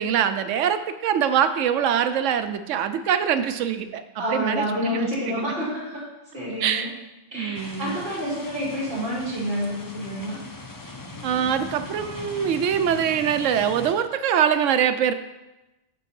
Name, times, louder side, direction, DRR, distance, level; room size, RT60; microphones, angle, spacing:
voice 1, 0.0-4.0 4.3-5.1 6.6-6.9 7.3-8.0 11.2-15.1, right 8 dB, 85° right, 11 dB, 1.0 m, -23 dB
voice 2, 4.2-6.1 6.3-6.9 7.3-10.4, equal, 50° right, -8 dB, 3.3 m, -28 dB
sound 1, 7.5-13.9, left 2 dB, 20° left, 0.6 m, -39 dB
6.6 x 5.5 x 6.9 m, 1.0 s
omnidirectional pair, 1.3 m